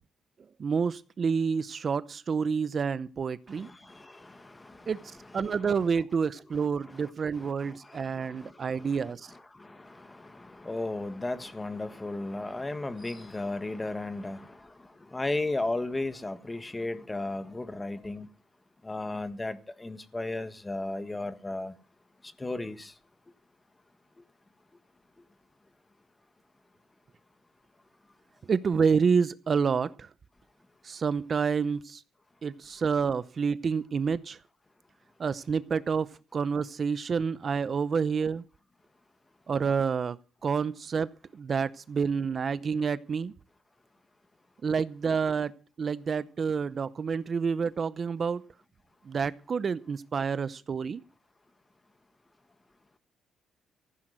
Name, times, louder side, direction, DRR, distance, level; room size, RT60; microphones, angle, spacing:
voice 1, 0.6-3.7 4.9-5.0 5.3-9.3 28.5-30.1 30.8-32.0 32.4-34.4 35.2-38.4 39.5-40.2 40.4-43.3 44.6-45.5 45.8-48.4 49.1-51.0, right 6 dB, 40° right, 0.7 m, -28 dB
voice 2, 3.5-5.8 6.5-18.3 18.8-21.7 22.2-22.9, left 2 dB, 15° left, 1.5 m, -36 dB
15.0 x 10.5 x 6.5 m
cardioid pair, 115°, 0 cm